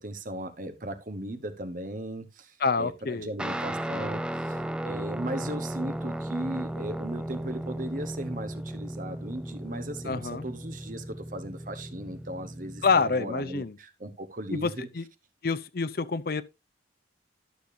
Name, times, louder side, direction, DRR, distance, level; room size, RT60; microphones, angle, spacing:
voice 1, 0.0-14.9, right 1 dB, 45° right, 1.1 m, -37 dB
voice 2, 2.6-3.3 10.1-10.5 12.8-13.7 14.5-15.0 15.4-16.4, left 4 dB, 55° left, 0.6 m, -27 dB
Guitar, 3.4-13.1, right 1 dB, 5° right, 0.4 m, -35 dB
11.5 x 6.9 x 2.7 m
head